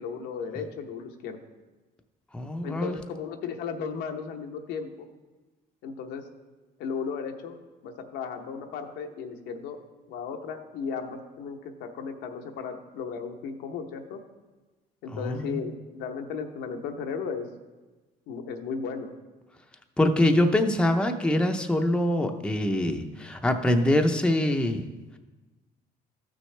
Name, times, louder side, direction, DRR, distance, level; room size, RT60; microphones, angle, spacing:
voice 1, 0.0-1.4 2.6-5.1 5.8-6.2 6.8-7.6 7.8-9.8 10.1-14.2 15.0-17.5 18.3-19.1, left 6 dB, 90° left, 4 dB, 0.9 m, -35 dB
voice 2, 2.3-3.0 15.1-15.6 20.0-24.8, left 1 dB, 5° left, 4 dB, 0.6 m, -24 dB
13.5 x 6.2 x 3.3 m, 1.2 s
cardioid pair, 110°, 17 cm